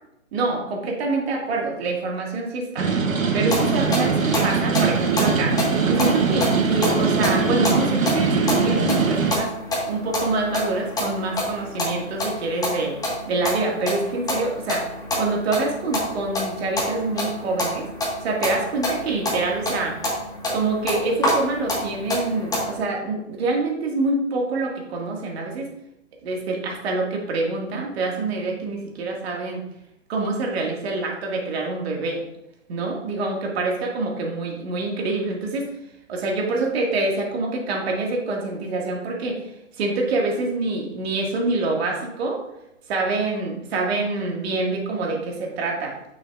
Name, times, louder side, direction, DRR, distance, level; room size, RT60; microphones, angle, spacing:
voice 1, 0.3-2.9 3.3-9.5 9.9-13.0 13.3-14.9 15.2-17.9 18.2-20.0 20.5-25.7 26.2-29.7 30.1-32.2 32.7-35.7 36.1-39.4 39.8-42.4 42.9-46.0, right 3 dB, 50° right, 0 dB, 2.1 m, -26 dB
sound 1, 2.8-9.4, right 5 dB, 85° right, 1.1 m, -21 dB
sound 2, 3.5-22.8, left 1 dB, 10° left, 1.6 m, -28 dB
8.2 x 6.4 x 2.5 m, 0.84 s
hypercardioid pair, 130°, 40 cm